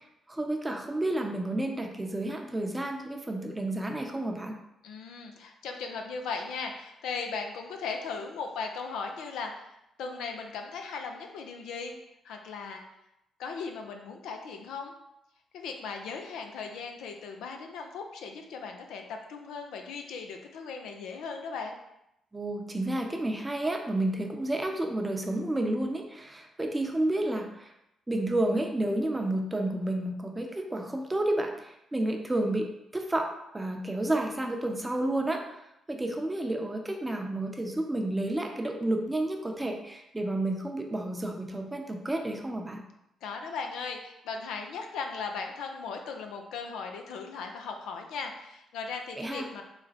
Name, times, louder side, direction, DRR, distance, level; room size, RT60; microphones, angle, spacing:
voice 1, 0.0-4.6 22.3-27.7 28.1-33.3 33.5-35.6 35.9-42.8 49.2-49.5, right 1 dB, 15° right, 3 dB, 0.6 m, -31 dB
voice 2, 4.8-11.9 12.2-12.8 13.4-14.9 15.5-21.8 43.2-49.6, left 5 dB, 80° left, 3 dB, 0.5 m, -38 dB
4.0 x 2.2 x 4.0 m, 0.84 s
supercardioid pair, 65°, 0 cm